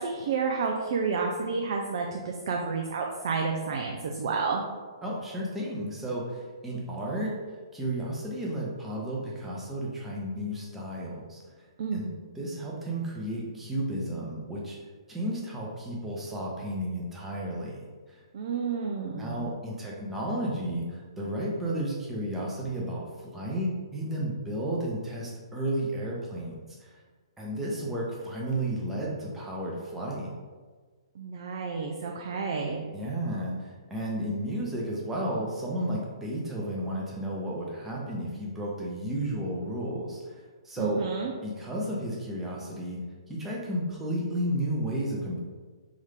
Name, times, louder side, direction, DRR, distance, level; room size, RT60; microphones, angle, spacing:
voice 1, 0.0-4.6 11.8-12.1 18.3-19.5 31.2-32.9 40.8-41.3, right 5 dB, 50° right, 1 dB, 0.4 m, -30 dB
voice 2, 5.0-11.7 11.9-14.8 15.1-18.2 19.2-23.0 23.3-27.0 27.4-30.3 32.9-41.0 41.4-45.4, right 1 dB, 10° right, -4 dB, 0.8 m, -33 dB
3.5 x 2.7 x 3.5 m, 1.4 s
figure-of-eight pair, 125°, 3 cm